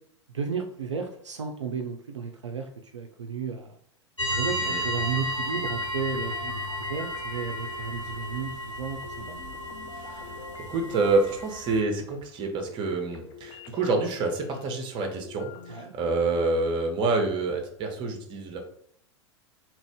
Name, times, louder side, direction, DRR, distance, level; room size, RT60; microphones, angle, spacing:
voice 1, 0.3-3.8 4.3-9.3 15.7-15.9, right 6 dB, 80° right, 3 dB, 0.4 m, -33 dB
sound 1, 4.2-11.8, equal, 90° left, 0.7 m, -33 dB
Space Arp F Chords, 4.3-12.8 13.1-15.9, left 7 dB, 40° left, 0.4 m, -48 dB
voice 2, 9.9-10.4 10.7-18.6, right 3 dB, 35° right, 3 dB, 0.8 m, -27 dB
2.9 x 2.6 x 3.4 m, 0.64 s
figure-of-eight pair, 90°, 15 cm